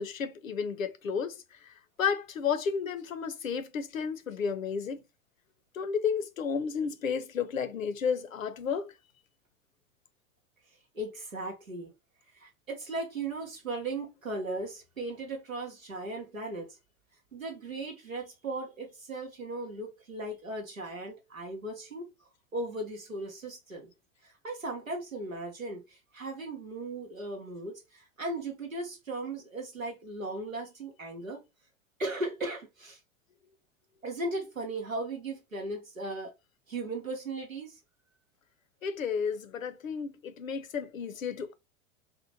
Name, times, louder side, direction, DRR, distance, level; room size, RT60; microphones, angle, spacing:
voice 1, 0.0-5.0 5.7-8.9 38.8-41.5, left 6 dB, 80° left, 0.5 m, -32 dB
voice 2, 10.9-11.9 12.3-16.8 17.3-22.1 22.5-23.9 24.2-31.4 32.0-33.0 34.0-36.3 36.7-37.8, right 2 dB, 90° right, 0.9 m, -37 dB
2.8 x 2.1 x 2.8 m
figure-of-eight pair, 90°, 39 cm